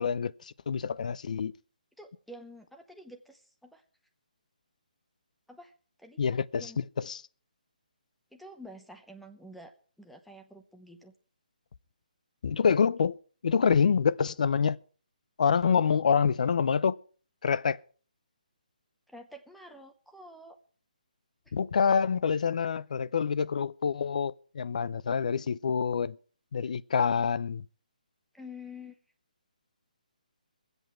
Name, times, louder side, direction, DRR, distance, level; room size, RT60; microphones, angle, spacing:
voice 1, 0.0-1.5 6.2-7.2 12.4-13.2 13.4-14.8 15.4-16.9 17.4-17.8 21.5-26.2 26.5-27.6, left 6 dB, 60° left, 0.6 m, -26 dB
voice 2, 2.0-3.8 5.5-5.7 6.0-6.2 6.6-6.8 8.3-11.1 19.1-20.6 21.5-21.6 28.3-28.9, left 1 dB, ahead, 0.7 m, -48 dB
22.5 x 8.0 x 4.5 m
hypercardioid pair, 160°, 5 cm